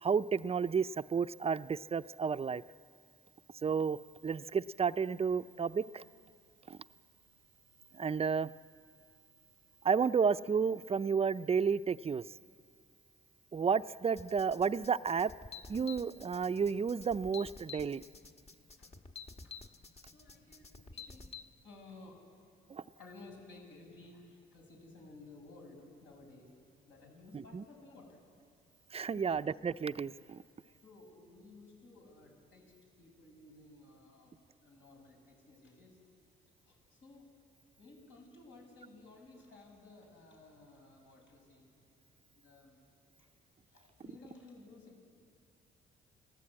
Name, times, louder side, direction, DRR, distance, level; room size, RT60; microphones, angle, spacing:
voice 1, 0.0-2.6 3.6-4.0 4.2-6.0 6.7-6.8 7.9-8.5 9.8-12.2 13.5-15.3 15.7-18.0 22.7-22.8 27.3-27.6 28.9-30.4, right 6 dB, 30° right, 14 dB, 0.5 m, -31 dB
sound 1, 14.2-21.4, left 5 dB, 30° left, 1.5 m, -50 dB
voice 2, 19.9-21.3 21.6-22.2 23.0-26.5 26.9-28.2 29.1-29.3 30.8-34.3 34.6-36.0 36.7-37.2 37.8-41.7 42.3-42.8 43.2-43.3 43.7-45.0, left 2 dB, 70° left, 0 dB, 6.9 m, -56 dB
29.0 x 17.5 x 8.8 m, 2.3 s
cardioid pair, 90°, 20 cm